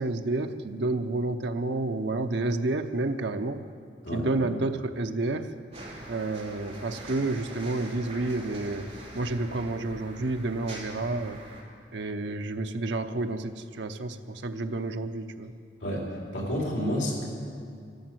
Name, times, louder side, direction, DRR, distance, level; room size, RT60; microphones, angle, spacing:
voice 1, 0.0-3.6 4.1-5.6 6.1-8.9 9.1-11.4 11.9-15.5, right 2 dB, 70° right, 7 dB, 0.8 m, -30 dB
sound 1, 5.7-11.6, right 1 dB, 35° right, 2.8 m, -43 dB
voice 2, 16.3-17.3, equal, 75° left, -2 dB, 4.3 m, -29 dB
14.0 x 12.0 x 7.8 m, 2.3 s
head